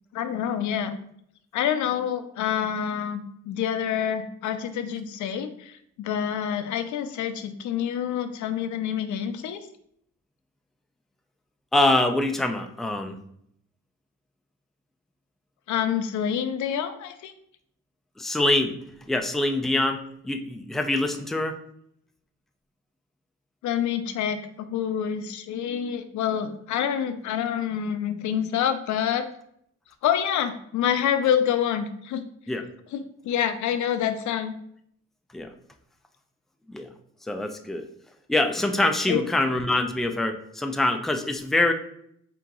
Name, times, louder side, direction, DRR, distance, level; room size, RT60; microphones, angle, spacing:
voice 1, 0.1-1.0 1.5-3.2 3.4-9.6 15.7-17.3 23.6-29.3 30.0-32.2 32.9-34.5 39.1-39.2, left 9 dB, 75° left, 9 dB, 0.6 m, -27 dB
voice 2, 11.7-13.2 18.2-18.7 19.1-20.0 20.2-21.6 32.5-32.6 35.3-35.5 36.7-36.9 37.3-37.9 38.3-41.7, left 2 dB, ahead, 5 dB, 0.4 m, -24 dB
3.7 x 2.9 x 3.7 m, 0.70 s
cardioid pair, 90°, 30 cm